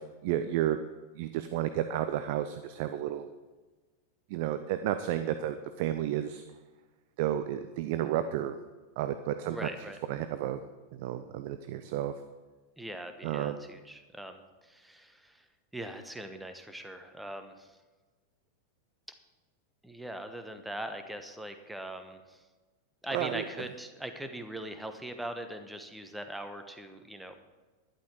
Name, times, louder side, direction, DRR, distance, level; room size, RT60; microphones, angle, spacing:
voice 1, 0.2-0.8 1.2-3.3 4.3-6.4 7.2-8.6 9.0-9.7 10.1-10.6 10.9-12.1 13.2-13.6 23.1-23.4, right 11 dB, 50° right, 10 dB, 0.6 m, -31 dB
voice 2, 9.4-10.0 12.8-15.4 15.7-17.7 19.8-22.4 23.0-27.3, right 1 dB, 5° right, 7 dB, 1.1 m, -41 dB
11.5 x 11.5 x 4.7 m, 1.3 s
figure-of-eight pair, 90°, 0 cm